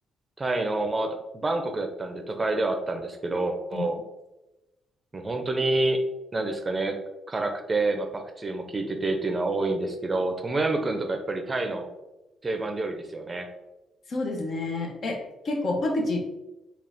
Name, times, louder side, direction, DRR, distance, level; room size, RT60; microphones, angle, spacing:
voice 1, 0.4-4.0 5.1-6.0 6.3-7.0 7.3-11.9 12.4-13.5, right 2 dB, 25° right, 5 dB, 0.5 m, -28 dB
voice 2, 14.1-16.2, left 2 dB, 50° left, 2 dB, 0.9 m, -28 dB
3.8 x 2.4 x 3.5 m, 0.98 s
cardioid pair, 90°, 0 cm